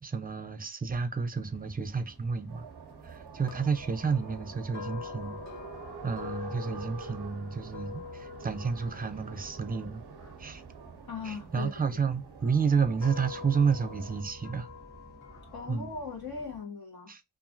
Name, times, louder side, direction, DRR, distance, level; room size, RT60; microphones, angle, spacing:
voice 1, 0.0-2.7 3.0-5.4 6.0-10.0 10.4-10.6 11.2-14.7 15.7-15.9 17.1-17.2, right 5 dB, 25° right, 0.5 m, -30 dB
sound 1, 1.4-16.6, right 3 dB, 25° left, 1.4 m, -52 dB
sound 2, 2.5-14.2, right 7 dB, 85° right, 0.5 m, -48 dB
sound 3, 3.4-11.6 12.3-15.8, left 7 dB, 45° left, 0.7 m, -46 dB
voice 2, 11.1-11.7 15.5-17.1, left 5 dB, 65° left, 1.4 m, -39 dB
2.9 x 2.5 x 2.5 m
wide cardioid pair, 55°, 39 cm